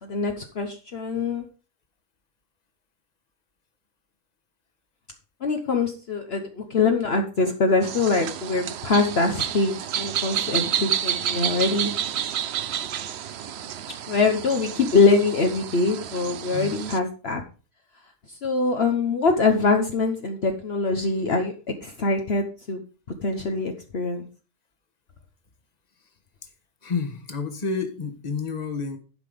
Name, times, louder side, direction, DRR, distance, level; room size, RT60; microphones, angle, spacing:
voice 1, 0.0-1.4 5.4-11.9 14.1-17.4 18.3-21.5 21.8-22.8 23.2-24.3, left 3 dB, 55° left, 4 dB, 1.2 m, -23 dB
sound 1, 7.8-17.0, right 9 dB, 60° right, 0.8 m, -30 dB
voice 2, 16.5-16.9 26.8-29.0, left 4 dB, 30° left, 7 dB, 1.4 m, -30 dB
11.5 x 5.9 x 5.1 m, 0.36 s
omnidirectional pair, 1.4 m